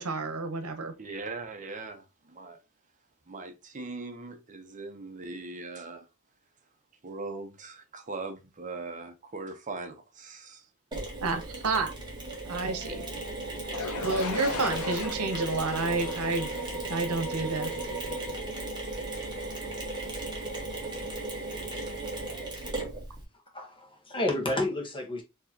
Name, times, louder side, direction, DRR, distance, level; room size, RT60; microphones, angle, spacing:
voice 1, 0.0-0.9 11.2-11.9 12.5-13.0 13.9-16.5 16.8-17.7, right 3 dB, 90° right, 0.8 m, -30 dB
voice 2, 1.0-2.6 3.3-6.0 7.0-10.6, right 3 dB, 35° right, 0.7 m, -40 dB
Mechanisms, 10.9-23.2, right 2 dB, 20° right, 1.4 m, -36 dB
sound 1, 13.7-17.6, left 5 dB, 90° left, 0.6 m, -38 dB
voice 3, 23.5-25.2, left 1 dB, 25° left, 1.1 m, -30 dB
4.5 x 2.9 x 2.8 m
head